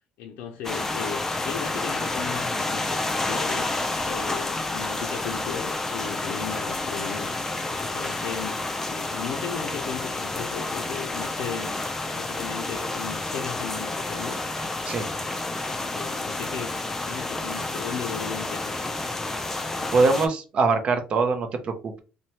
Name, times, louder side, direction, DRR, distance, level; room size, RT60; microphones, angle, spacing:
voice 1, 0.2-3.7 4.0-7.3 7.7-8.6 8.9-11.8 12.1-14.4 14.8-15.4 15.6-16.7 17.1-18.8, left 8 dB, 90° left, 0.4 m, -36 dB
sound 1, 0.6-20.3, left 2 dB, 15° left, 0.4 m, -30 dB
voice 2, 19.9-22.0, right 4 dB, 40° right, 0.5 m, -23 dB
3.0 x 2.1 x 2.7 m
cardioid pair, 145°, 3 cm